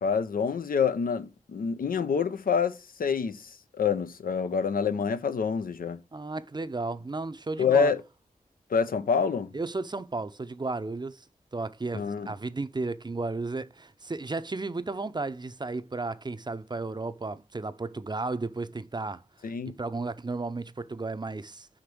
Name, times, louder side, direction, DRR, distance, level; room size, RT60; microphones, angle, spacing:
voice 1, 0.0-3.5 3.8-6.0 7.6-8.0 8.7-9.5 11.9-12.3 19.4-19.8, left 6 dB, 90° left, 0.6 m, -27 dB
voice 2, 6.1-7.9 9.5-11.2 11.5-21.7, right 3 dB, 30° right, 0.5 m, -34 dB
5.2 x 5.1 x 6.1 m
cardioid pair, 55°, 14 cm